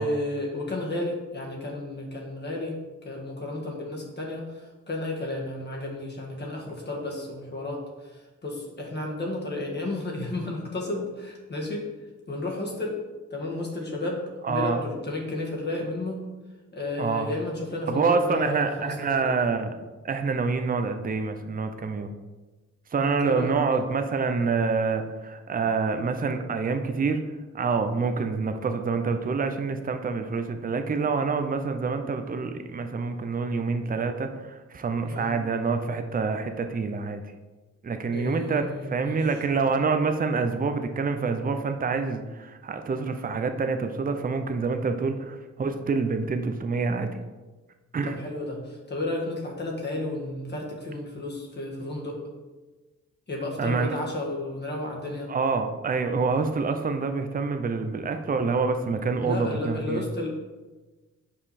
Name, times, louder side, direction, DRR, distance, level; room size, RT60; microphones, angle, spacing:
voice 1, 0.0-2.8 3.0-11.9 12.3-13.0 13.3-16.2 16.7-19.3 23.0-23.5 35.1-35.3 38.1-39.3 48.0-52.2 53.3-55.3 59.2-60.4, left 2 dB, 35° left, -2 dB, 1.5 m, -32 dB
voice 2, 14.4-14.8 17.0-17.3 17.9-19.7 20.0-22.1 22.9-27.2 27.5-37.2 37.8-47.1 47.9-48.2 53.6-54.0 55.3-60.0, right 4 dB, 30° right, 7 dB, 0.5 m, -27 dB
5.5 x 5.0 x 4.2 m, 1.2 s
cardioid pair, 95°, 29 cm